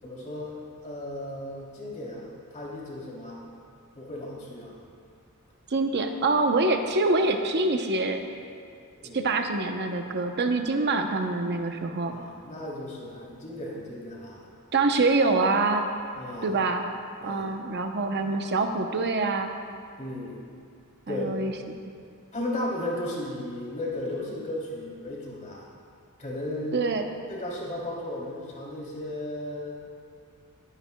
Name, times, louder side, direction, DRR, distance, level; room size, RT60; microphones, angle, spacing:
voice 1, 0.0-3.4 3.9-4.8 9.0-9.3 12.1-14.4 16.2-16.6 17.2-17.6 20.0-20.4 21.1-21.3 22.3-25.7 26.2-26.9 27.3-29.7, left 1 dB, 35° left, -4 dB, 3.0 m, -35 dB
voice 2, 5.7-8.2 9.1-12.1 14.7-15.8 16.4-16.8 17.2-19.5 21.1-21.5 26.7-27.1, right 3 dB, 50° right, 5 dB, 0.8 m, -25 dB
22.0 x 9.8 x 2.3 m, 2.4 s
head